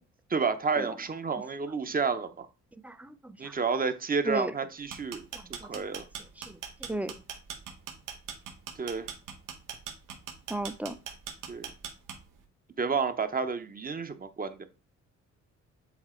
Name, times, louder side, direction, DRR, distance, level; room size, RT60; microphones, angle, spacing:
voice 1, 0.3-2.5 3.4-5.2 5.5-6.0 8.8-9.1 11.5-11.7 12.8-14.7, right 5 dB, 30° right, 0.8 m, -30 dB
voice 2, 2.8-3.5 4.3-4.5 5.3-5.8 6.4-6.6 6.9-7.1 10.5-11.0, right 1 dB, 5° right, 0.5 m, -35 dB
sound 1, 4.8-12.4, right 8 dB, 85° right, 1.4 m, -40 dB
7.2 x 3.4 x 4.4 m
cardioid pair, 90°, 30 cm